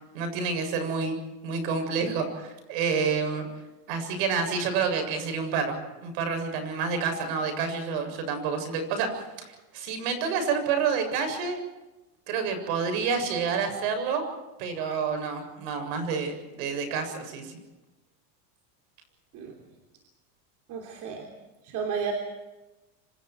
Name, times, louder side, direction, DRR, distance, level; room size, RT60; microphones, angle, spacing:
voice 1, 0.1-1.2 1.4-3.5 3.9-11.6 12.3-14.2 14.6-17.6, right 5 dB, 55° right, 7 dB, 7.4 m, -29 dB
voice 2, 20.7-21.3 21.6-22.1, right 7 dB, 40° right, 2 dB, 3.3 m, -32 dB
27.5 x 26.0 x 4.7 m, 1.1 s
supercardioid pair, 150°, 47 cm